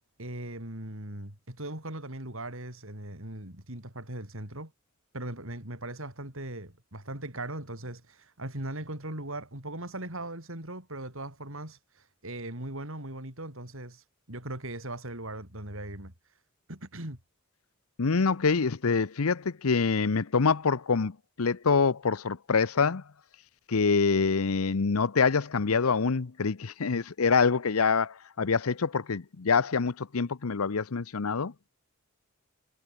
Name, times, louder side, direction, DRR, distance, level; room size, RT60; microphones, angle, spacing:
voice 1, 0.2-4.7 5.1-16.1 16.7-17.2, right 1 dB, 65° right, 5.7 m, -39 dB
voice 2, 18.0-23.0 23.7-31.5, left 5 dB, 90° left, 0.8 m, -26 dB
head